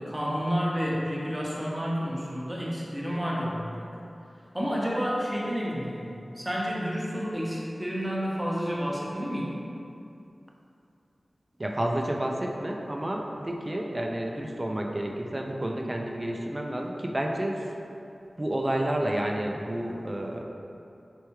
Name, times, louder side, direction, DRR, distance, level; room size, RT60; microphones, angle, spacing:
voice 1, 0.0-3.9 4.5-9.6, equal, 10° right, -5 dB, 0.9 m, -30 dB
voice 2, 11.6-17.6 18.4-20.4, right 1 dB, 30° right, 1 dB, 0.4 m, -30 dB
4.5 x 3.4 x 3.0 m, 2.7 s
wide cardioid pair, 55°, 0 cm